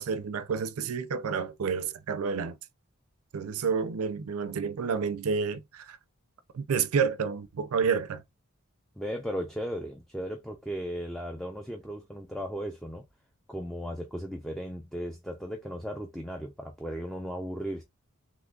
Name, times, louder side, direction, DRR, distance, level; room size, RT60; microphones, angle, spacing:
voice 1, 0.0-2.6 3.3-6.0 6.5-8.2, right 6 dB, 80° right, 0.4 m, -29 dB
voice 2, 9.0-13.0 13.5-17.8, equal, ahead, 0.4 m, -36 dB
3.6 x 3.0 x 2.3 m
head